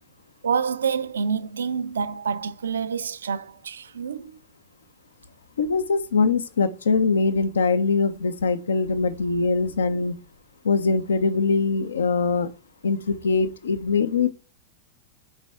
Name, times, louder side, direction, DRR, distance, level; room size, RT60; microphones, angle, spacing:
voice 1, 0.4-4.3, right 6 dB, 70° right, 0.4 m, -27 dB
voice 2, 5.6-10.1 10.6-12.5 12.8-14.3, left 4 dB, 70° left, 0.6 m, -22 dB
7.4 x 4.5 x 3.5 m
figure-of-eight pair, 90°, 0 cm